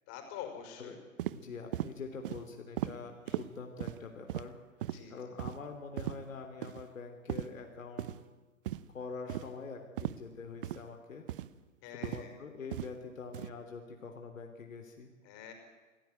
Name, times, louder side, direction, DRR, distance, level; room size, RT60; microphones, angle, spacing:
voice 1, 0.1-1.0 3.3-3.4 4.9-5.1 11.8-12.4 15.2-15.5, left 9 dB, 30° left, 6 dB, 5.5 m, -45 dB
sound 1, 1.2-1.4 1.7-1.9 2.2-2.4 2.8-2.9 3.3-3.4 3.8-4.0 4.3-4.5 4.8-5.0 5.4-5.6 6.0-6.2 6.6-6.8 7.3-7.5 8.0-8.2 8.7-8.9 9.3-9.5 10.0-10.2 10.6-10.8 11.3-11.5 12.0-12.3 12.7-12.9 13.3-13.5, right 13 dB, 40° right, 0.9 m, -36 dB
voice 2, 1.3-4.6 5.1-8.2 8.9-11.2 11.8-15.1, left 4 dB, 70° left, 4 dB, 3.3 m, -45 dB
28.0 x 17.5 x 9.3 m, 1.3 s
figure-of-eight pair, 125°, 41 cm